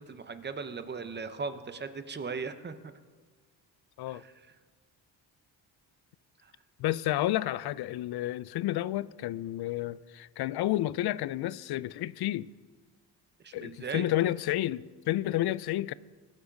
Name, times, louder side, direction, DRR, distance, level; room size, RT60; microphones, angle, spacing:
voice 1, 0.0-2.9 4.1-4.3 6.4-6.5 13.4-14.2, right 5 dB, 25° right, 0.8 m, -38 dB
voice 2, 6.8-12.5 13.5-15.9, left 14 dB, 70° left, 0.5 m, -30 dB
20.5 x 7.3 x 5.2 m
cardioid pair, 125°, 39 cm